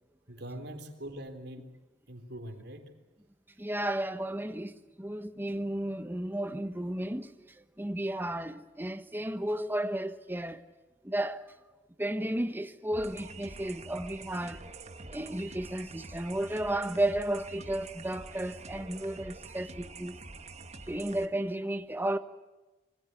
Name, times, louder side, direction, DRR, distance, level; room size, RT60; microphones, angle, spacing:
voice 1, 0.3-1.7 2.1-2.9, right 1 dB, 60° right, 3.8 m, -43 dB
voice 2, 3.6-10.6 11.0-11.4 12.0-14.6 15.1-20.2 20.9-22.2, right 1 dB, 10° right, 1.1 m, -33 dB
sound 1, 12.9-21.3, right 3 dB, 35° right, 1.4 m, -46 dB
26.5 x 24.0 x 8.3 m
head